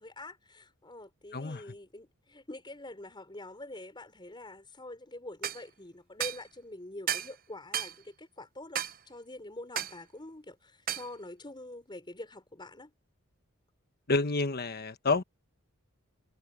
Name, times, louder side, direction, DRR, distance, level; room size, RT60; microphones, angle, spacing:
voice 1, 0.0-12.9, left 2 dB, 20° left, 4.4 m, -46 dB
voice 2, 1.3-1.6 14.1-15.2, left 3 dB, 45° left, 1.3 m, -29 dB
sound 1, 5.4-5.6 6.2-6.4 7.1-7.3 7.7-7.9 8.7-9.0 9.8-10.0 10.9-11.1, right 9 dB, 40° right, 0.7 m, -33 dB
head